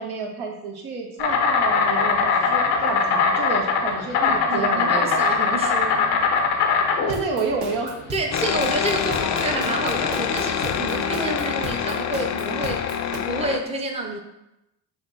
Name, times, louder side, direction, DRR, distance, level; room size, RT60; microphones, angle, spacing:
voice 1, 0.0-5.2 7.1-8.0 11.1-11.8, right 3 dB, 70° right, 1 dB, 0.9 m, -29 dB
Insect, 1.2-11.2, left 5 dB, 85° left, 0.6 m, -22 dB
voice 2, 2.4-3.0 4.2-6.3 8.1-14.2, right 2 dB, 15° right, 3 dB, 0.6 m, -29 dB
sound 1, 7.1-13.2, right 3 dB, 45° right, 1.3 m, -35 dB
sound 2, 8.3-13.6, left 8 dB, 40° left, 0.4 m, -26 dB
5.0 x 2.4 x 3.9 m, 0.90 s
hypercardioid pair, 45°, 49 cm